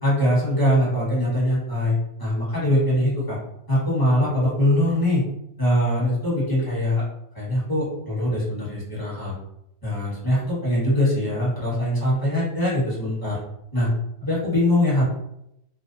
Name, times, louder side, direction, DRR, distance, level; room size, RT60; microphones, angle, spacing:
voice 1, 0.0-3.4 3.7-5.2 5.6-7.0 7.3-9.3 9.8-13.4 13.7-13.9 14.2-15.0, left 1 dB, 20° left, -8 dB, 0.8 m, -22 dB
2.6 x 2.0 x 2.6 m, 0.81 s
omnidirectional pair, 1.6 m